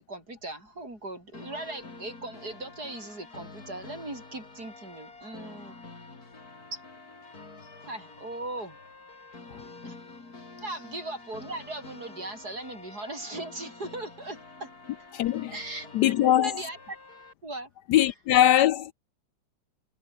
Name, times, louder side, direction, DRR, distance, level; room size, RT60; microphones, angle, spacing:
voice 1, 0.0-5.8 6.7-6.8 7.9-8.8 9.8-10.0 10.6-14.7 15.5-17.0 17.4-17.7, right 2 dB, 55° right, 8.0 m, -38 dB
sound 1, 1.3-17.3, left 3 dB, 55° left, 4.6 m, -48 dB
voice 2, 15.1-15.5 15.9-16.6 17.9-18.9, left 12 dB, 70° left, 1.1 m, -22 dB
omnidirectional pair, 2.0 m